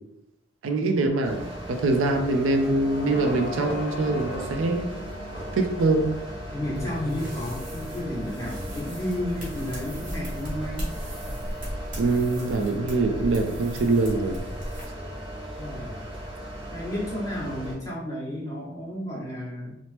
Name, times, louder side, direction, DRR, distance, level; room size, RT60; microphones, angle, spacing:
voice 1, 0.6-1.4 1.7-4.9 5.5-6.1 12.0-14.4, right 2 dB, 75° right, 5 dB, 0.4 m, -23 dB
sound 1, 1.2-17.7, equal, 25° right, 0.6 m, -38 dB
sound 2, 2.1-8.1, equal, 65° left, 0.5 m, -40 dB
voice 2, 6.5-10.9 15.6-16.2 16.7-19.8, left 1 dB, 15° left, -5 dB, 0.8 m, -32 dB
sound 3, 6.7-14.8, equal, 40° right, 1.1 m, -37 dB
2.9 x 2.0 x 3.1 m, 0.82 s
head